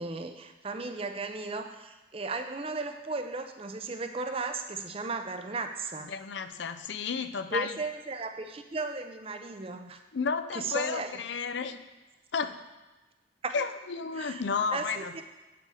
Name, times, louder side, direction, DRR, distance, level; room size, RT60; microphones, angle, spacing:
voice 1, 0.0-6.1 7.5-10.0 10.5-11.1 13.4-13.5 14.1-14.4 14.7-15.2, right 3 dB, 30° right, 7 dB, 0.6 m, -35 dB
voice 2, 6.1-7.8 10.1-11.9 12.3-12.5 13.5-15.2, left 5 dB, 70° left, 10 dB, 0.5 m, -32 dB
8.3 x 6.8 x 4.9 m, 1.1 s
head